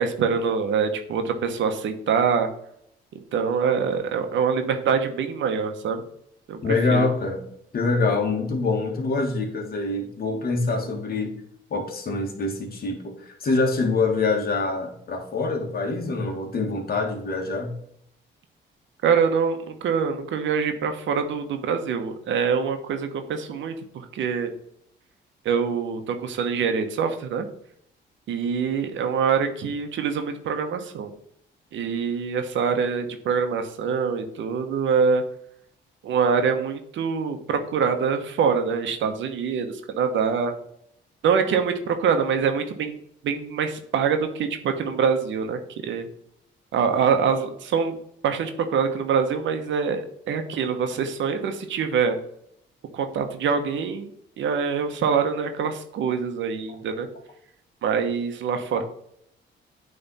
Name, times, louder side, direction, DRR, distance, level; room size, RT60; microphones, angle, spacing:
voice 1, 0.0-2.5 3.3-6.0 6.5-7.1 19.0-24.5 25.4-27.4 28.3-31.1 31.7-35.2 36.0-40.5 41.2-46.1 46.7-48.0 48.2-52.2 52.9-54.1 54.4-57.1 57.8-58.8, right 6 dB, 70° right, 7 dB, 1.0 m, -24 dB
voice 2, 6.6-7.4 7.7-11.3 11.7-17.7, left 3 dB, 50° left, 2 dB, 1.7 m, -25 dB
8.9 x 3.4 x 4.2 m, 0.73 s
cardioid pair, 90°, 20 cm